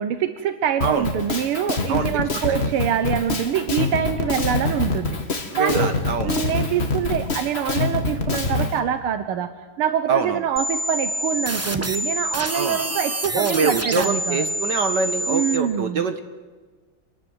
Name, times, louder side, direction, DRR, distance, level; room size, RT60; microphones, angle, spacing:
voice 1, 0.0-5.2 5.5-6.0 6.2-9.5 9.8-14.4 15.3-16.0, right 9 dB, 85° right, 9 dB, 1.9 m, -24 dB
Drum kit, 0.8-8.7, left 3 dB, 30° left, 1.8 m, -25 dB
voice 2, 5.5-6.4 10.1-10.4 12.5-12.8 13.3-16.2, right 5 dB, 55° right, 8 dB, 1.8 m, -24 dB
sound 1, 10.6-15.6, equal, 10° right, 0.8 m, -27 dB
27.0 x 20.5 x 8.0 m, 1.4 s
omnidirectional pair, 2.3 m